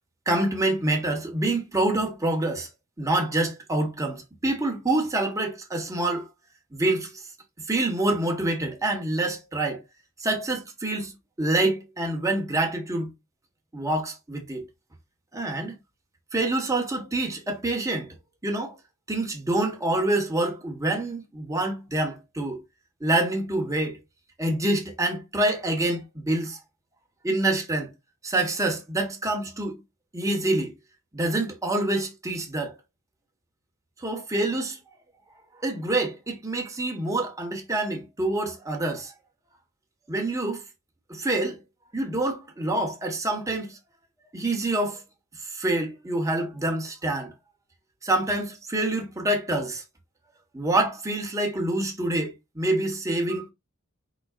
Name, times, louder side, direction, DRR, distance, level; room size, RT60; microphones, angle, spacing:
voice 1, 0.3-2.7 3.0-6.3 6.7-7.1 7.7-9.8 10.2-13.1 13.7-14.6 15.3-15.7 16.3-18.2 18.4-18.8 19.1-22.6 23.0-24.0 24.4-26.6 27.2-27.9 28.2-29.8 30.1-30.7 31.1-32.8 34.0-34.8 35.6-39.1 40.1-40.6 41.1-41.6 41.9-43.8 44.3-45.0 45.4-47.3 48.0-49.8 50.5-53.5, right 2 dB, 15° right, 1.3 m, -26 dB
5.2 x 3.9 x 2.4 m
head